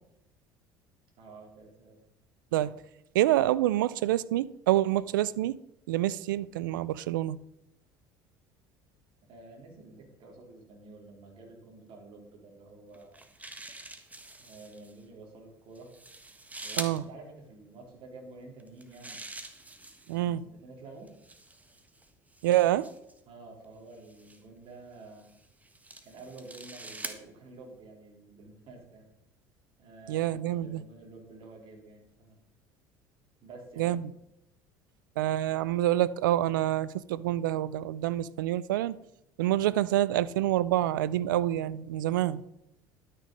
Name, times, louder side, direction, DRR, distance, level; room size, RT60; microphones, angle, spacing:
voice 1, 1.2-2.0 9.2-13.2 14.4-15.9 16.6-19.2 20.1-21.1 23.3-25.3 26.0-29.1 29.8-32.4 33.4-34.0, right 3 dB, 55° right, 3.5 m, -50 dB
voice 2, 3.1-5.6 5.9-7.4 16.8-17.0 20.1-20.4 22.4-22.9 30.1-30.8 33.8-34.0 35.2-39.0 39.4-42.4, right 13 dB, 90° right, 0.4 m, -27 dB
sound 1, 12.9-14.9 15.8-17.0 18.6-20.2 21.1-23.2 24.1-24.4 25.2-27.2, right 2 dB, 15° right, 1.5 m, -44 dB
12.0 x 6.6 x 5.3 m
hypercardioid pair, 75°, 10 cm